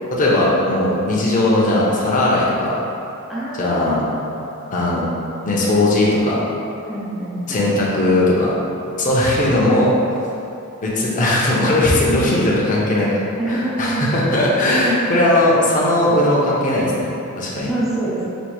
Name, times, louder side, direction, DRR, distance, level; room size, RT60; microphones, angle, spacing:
voice 1, 0.1-2.8 3.6-4.0 4.7-5.0 5.4-6.4 7.5-8.6 9.0-9.9 10.8-13.2 13.5-17.7, left 1 dB, 35° left, -6 dB, 0.7 m, -18 dB
voice 2, 3.3-3.9 6.9-7.7 13.4-14.0 17.7-18.3, right 2 dB, ahead, -8 dB, 0.5 m, -25 dB
5.2 x 2.6 x 3.0 m, 2.8 s
head